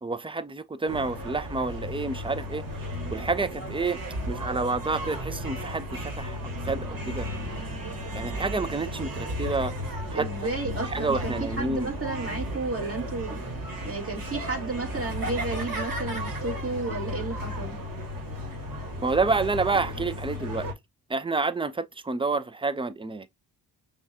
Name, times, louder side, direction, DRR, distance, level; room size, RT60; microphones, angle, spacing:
voice 1, 0.0-2.6 3.1-4.0 4.3-7.3 8.1-9.7 10.1-10.3 10.9-11.9 19.0-20.7 21.1-23.3, right 3 dB, 10° right, 0.5 m, -29 dB
sound 1, 0.9-20.7, equal, 45° right, 1.8 m, -34 dB
voice 2, 10.1-13.4 13.8-17.8, right 3 dB, 30° right, 2.0 m, -32 dB
5.7 x 2.4 x 2.7 m
supercardioid pair, 50°, 47 cm